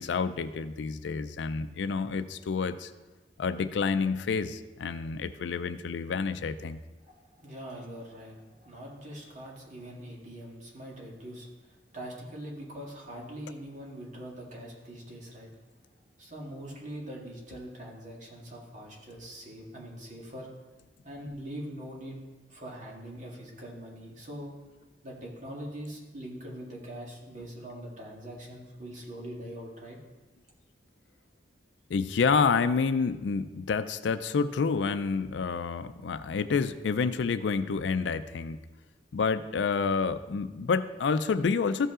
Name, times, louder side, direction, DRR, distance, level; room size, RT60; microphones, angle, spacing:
voice 1, 0.0-2.9 3.4-6.8 31.9-38.6 39.1-41.9, left 5 dB, 90° left, 12 dB, 0.4 m, -28 dB
voice 2, 7.0-15.5 16.2-20.5 21.0-22.2 22.5-24.5 25.0-30.0, equal, 45° right, -2 dB, 2.0 m, -43 dB
14.0 x 5.5 x 3.7 m, 1.2 s
head